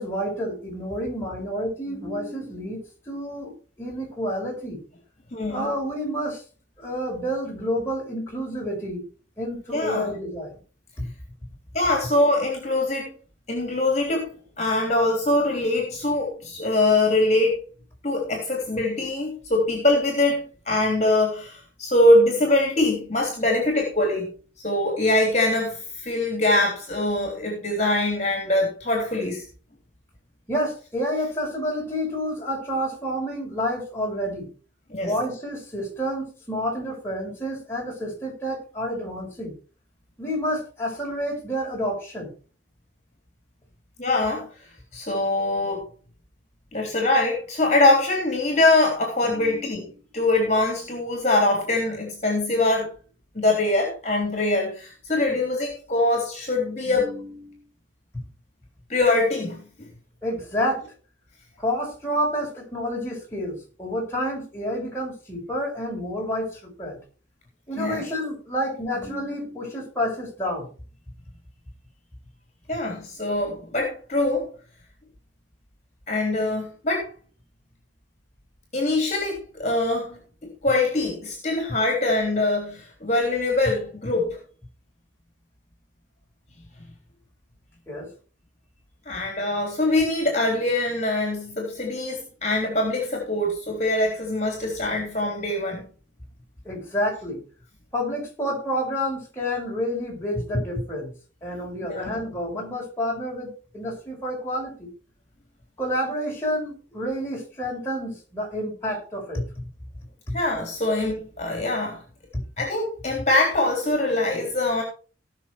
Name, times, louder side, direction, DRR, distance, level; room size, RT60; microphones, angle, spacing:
voice 1, 0.0-4.8 5.5-6.4 6.8-9.1 9.4-10.6 30.5-34.5 35.0-39.5 40.2-42.3 49.2-49.6 56.9-57.6 60.2-60.8 61.6-67.0 67.7-70.7 87.9-88.1 91.0-91.1 96.6-97.4 97.9-101.1 101.4-104.9 105.8-109.4 110.3-110.4, equal, 15° left, -2 dB, 5.7 m, -29 dB
voice 2, 5.3-5.7 9.7-10.1 11.7-13.1 13.5-14.3 14.6-17.6 18.0-24.3 24.6-29.4 34.9-35.1 44.0-44.5 44.9-45.8 46.7-49.8 50.1-52.9 53.4-57.1 58.9-59.9 67.8-68.0 72.7-74.5 76.1-77.1 78.7-80.2 80.6-84.4 89.1-95.9 101.8-102.2 110.3-112.0 112.6-114.8, left 2 dB, 35° left, 1 dB, 3.5 m, -23 dB
18.5 x 6.6 x 4.7 m, 0.38 s
head